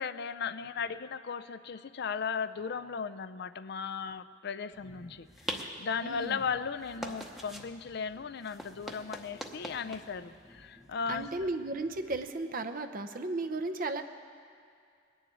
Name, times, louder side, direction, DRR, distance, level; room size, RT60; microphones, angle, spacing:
voice 1, 0.0-11.3, left 6 dB, 60° left, 13 dB, 0.5 m, -36 dB
sound 1, 4.7-12.3, equal, ahead, 0.9 m, -45 dB
voice 2, 6.0-6.4 11.1-14.0, right 2 dB, 50° right, 7 dB, 0.8 m, -35 dB
21.0 x 7.1 x 9.3 m, 2.3 s
head